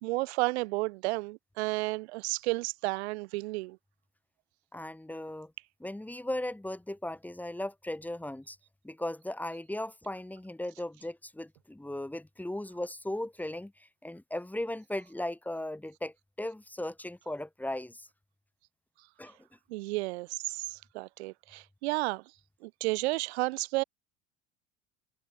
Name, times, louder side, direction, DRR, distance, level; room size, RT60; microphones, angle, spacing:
voice 1, 0.0-3.8 19.7-22.2 22.6-23.8, right 23 dB, 60° right, 1.9 m, -32 dB
voice 2, 4.7-5.5 5.8-8.6 8.8-18.1 19.2-19.4, left 1 dB, 5° left, 3.8 m, -37 dB
figure-of-eight pair, 80°, 38 cm